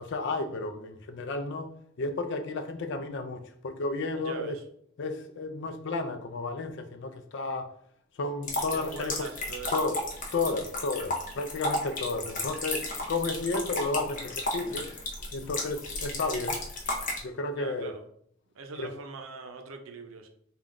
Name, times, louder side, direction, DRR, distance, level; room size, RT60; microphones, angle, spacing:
voice 1, 0.0-4.6 5.0-7.7 8.2-9.3 9.7-10.0 10.3-14.9 15.3-16.7 17.2-17.9 18.8-18.9, left 3 dB, 60° left, 0.4 m, -32 dB
voice 2, 4.1-4.6 8.7-9.9 17.5-18.0 18.5-20.3, right 4 dB, 75° right, 0.6 m, -42 dB
sound 1, 8.4-17.2, left 2 dB, 40° left, 0.8 m, -33 dB
3.6 x 2.3 x 3.7 m
head